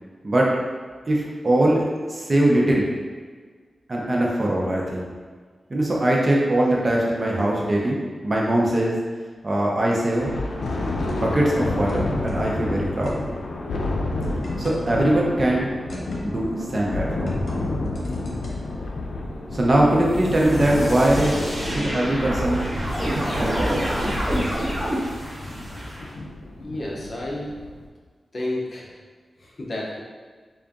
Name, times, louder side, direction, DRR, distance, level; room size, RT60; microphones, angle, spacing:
voice 1, 0.2-0.6 1.1-1.8 2.1-2.9 3.9-5.1 5.7-9.0 9.4-10.3 11.1-13.2 14.6-15.7 16.2-17.4 19.5-22.7 23.3-24.0, right 1 dB, 35° right, -3 dB, 0.7 m, -21 dB
Thunder, 10.2-27.9, left 2 dB, 75° left, 0.4 m, -30 dB
sound 1, 10.3-13.2 14.2-14.8 15.9-16.4 17.1-18.5 19.9-21.9 22.2-22.3, left 2 dB, 90° left, 0.8 m, -35 dB
sound 2, 19.0-26.1, equal, 10° right, 1.2 m, -28 dB
voice 2, 26.6-27.5 28.3-28.9 29.4-30.0, left 1 dB, 45° left, -3 dB, 0.7 m, -31 dB
3.7 x 2.5 x 3.5 m, 1.5 s
wide cardioid pair, 110°, 0 cm